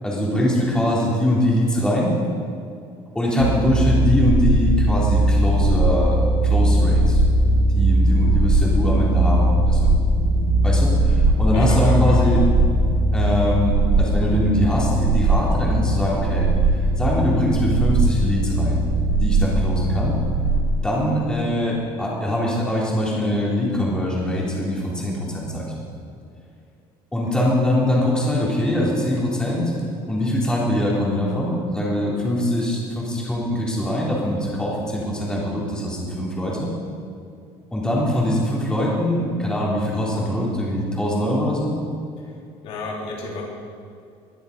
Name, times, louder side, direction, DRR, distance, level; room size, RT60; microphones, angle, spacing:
voice 1, 0.0-2.1 3.1-7.2 7.7-9.9 10.6-12.4 13.1-16.5 17.0-18.8 19.2-20.1 20.8-25.8 27.1-29.7 30.1-36.7 37.7-41.8, left 1 dB, 5° left, -5 dB, 3.6 m, -22 dB
sound 1, 3.4-20.6, right 1 dB, 75° right, 1.9 m, -19 dB
voice 2, 11.5-12.4 42.2-42.4 42.6-43.4, left 3 dB, 55° left, -2 dB, 4.2 m, -32 dB
21.0 x 12.0 x 5.2 m, 2.4 s
cardioid pair, 165°, 11 cm